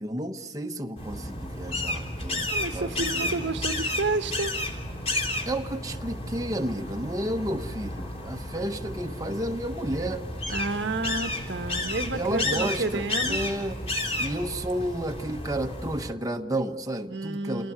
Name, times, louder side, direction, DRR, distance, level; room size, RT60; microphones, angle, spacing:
voice 1, 0.0-3.5 5.5-10.3 12.1-17.7, right 1 dB, 20° right, 3 dB, 1.1 m, -32 dB
sound 1, 1.0-16.1, left 2 dB, 35° left, 3.8 m, -32 dB
voice 2, 2.5-4.5 10.5-13.4 17.1-17.7, right 3 dB, 80° right, 8 dB, 1.2 m, -30 dB
29.0 x 18.5 x 9.5 m, 1.3 s
head